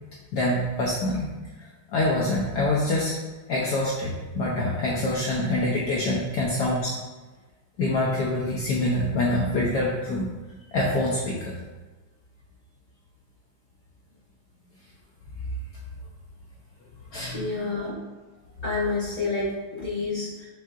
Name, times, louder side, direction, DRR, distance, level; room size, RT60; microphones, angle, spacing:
voice 1, 0.3-1.3 1.6-3.2 3.5-7.0 7.8-10.3 10.7-11.6 17.1-17.7, left 1 dB, 80° left, -4 dB, 0.9 m, -25 dB
voice 2, 17.3-17.9 18.6-20.5, left 3 dB, 40° left, -10 dB, 0.5 m, -29 dB
7.1 x 2.7 x 2.4 m, 1.2 s
omnidirectional pair, 2.4 m